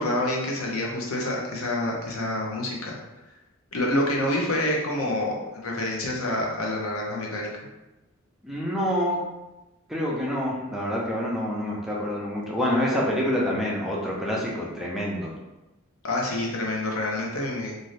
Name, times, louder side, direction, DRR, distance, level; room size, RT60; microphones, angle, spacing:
voice 1, 0.0-3.0 3.7-7.5 16.0-17.7, left 1 dB, 75° left, -1 dB, 0.7 m, -27 dB
voice 2, 8.4-9.2 9.9-15.3, equal, ahead, -5 dB, 0.5 m, -27 dB
2.6 x 2.5 x 3.2 m, 1.0 s
head